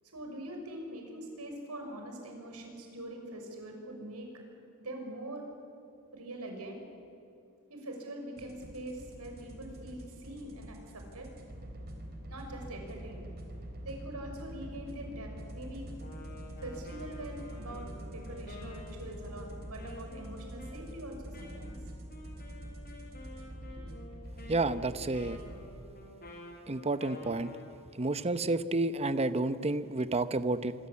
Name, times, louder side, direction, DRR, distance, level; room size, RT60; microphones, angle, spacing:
voice 1, 0.1-4.3 4.8-5.4 6.1-6.8 7.7-11.3 12.3-13.2 13.8-15.8 16.6-21.8 23.7-23.9, right 1 dB, 80° right, 2 dB, 6.2 m, -43 dB
sound 1, 8.4-25.6, equal, 45° right, 4.2 m, -45 dB
Wind instrument woodwind instrument, 16.0-27.7, left 1 dB, 45° left, 5.8 m, -50 dB
voice 2, 24.5-25.4 26.7-27.5 27.9-30.7, right 2 dB, 30° right, 13 dB, 0.8 m, -30 dB
25.5 x 24.5 x 8.5 m, 2.6 s
head